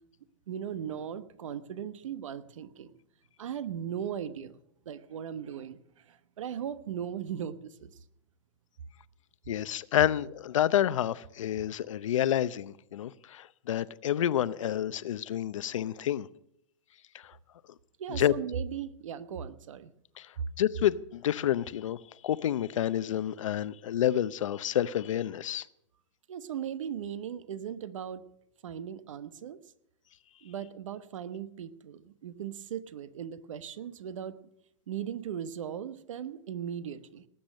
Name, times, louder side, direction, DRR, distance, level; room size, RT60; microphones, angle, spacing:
voice 1, 0.5-2.9 3.4-4.6 4.8-7.9 18.0-19.9 26.3-28.2 28.6-29.6 30.4-34.4 34.9-37.2, right 8 dB, 85° right, 1.1 m, -38 dB
voice 2, 9.5-16.3 17.2-17.3 18.1-18.3 20.2-20.3 20.6-22.0 22.2-25.7, left 11 dB, 85° left, 0.7 m, -29 dB
19.0 x 8.8 x 6.4 m
hypercardioid pair, 145°, 16 cm